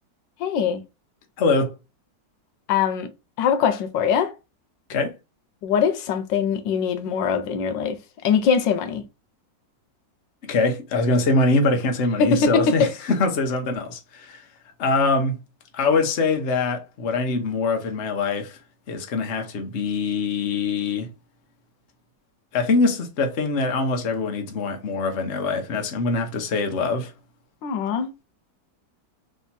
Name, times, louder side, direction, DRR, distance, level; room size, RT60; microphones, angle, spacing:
voice 1, 0.4-0.8 2.7-3.1 3.4-4.3 5.6-8.0 8.2-9.0 12.2-12.9 27.6-28.1, left 6 dB, 90° left, 1.4 m, -22 dB
voice 2, 1.4-1.7 4.9-5.1 10.4-14.5 14.8-15.4 15.7-18.6 18.9-21.1 22.5-27.1, left 3 dB, 50° left, 0.9 m, -23 dB
3.5 x 2.8 x 4.0 m
omnidirectional pair, 1.9 m